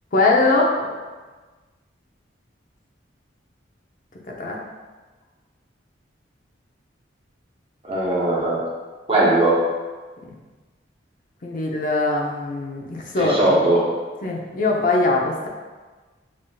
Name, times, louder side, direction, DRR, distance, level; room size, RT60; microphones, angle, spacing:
voice 1, 0.1-0.7 4.4-4.6 10.2-10.3 11.4-13.6 14.2-15.5, left 2 dB, 45° left, -1 dB, 0.5 m, -21 dB
voice 2, 7.8-8.6 9.1-9.6 13.2-13.9, right 2 dB, 30° right, -5 dB, 0.7 m, -19 dB
5.3 x 2.6 x 2.2 m, 1.3 s
head